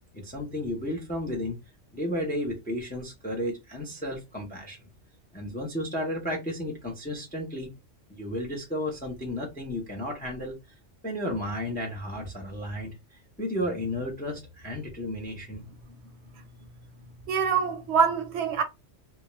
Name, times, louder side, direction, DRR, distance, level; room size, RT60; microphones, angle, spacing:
voice 1, 0.1-1.6 1.9-4.8 5.3-7.7 8.1-10.6 11.0-15.6, left 1 dB, 15° left, 0.4 m, -33 dB
voice 2, 17.3-18.6, right 6 dB, 70° right, 0.8 m, -24 dB
2.3 x 2.1 x 2.9 m
omnidirectional pair, 1.3 m